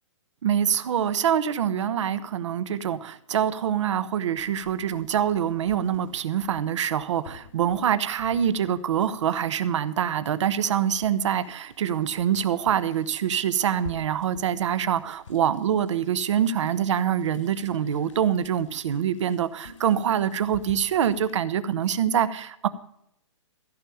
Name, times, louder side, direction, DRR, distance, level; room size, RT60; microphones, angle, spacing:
voice 1, 0.4-22.7, right 9 dB, 70° right, 13 dB, 1.1 m, -25 dB
sound 1, 4.4-21.4, left 5 dB, 80° left, 4.0 m, -50 dB
15.0 x 5.5 x 8.6 m, 0.71 s
hypercardioid pair, 140°, 16 cm